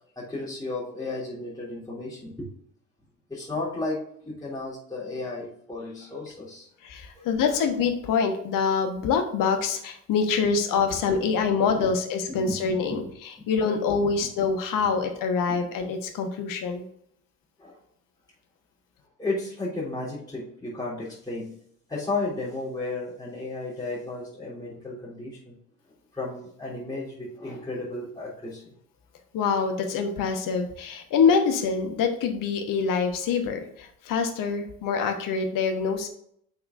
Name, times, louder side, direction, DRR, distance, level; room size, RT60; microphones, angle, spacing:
voice 1, 0.1-2.5 3.3-6.7 7.1-7.6 11.2-11.9 12.3-12.6 12.8-13.1 15.5-15.6 17.6-17.8 19.2-21.6 21.9-25.6 26.1-28.7, left 2 dB, 10° left, -8 dB, 3.3 m, -34 dB
voice 2, 6.8-13.0 13.5-16.8 29.3-36.1, left 5 dB, 45° left, 5 dB, 1.3 m, -25 dB
10.5 x 5.8 x 2.6 m, 0.67 s
figure-of-eight pair, 55°, 46 cm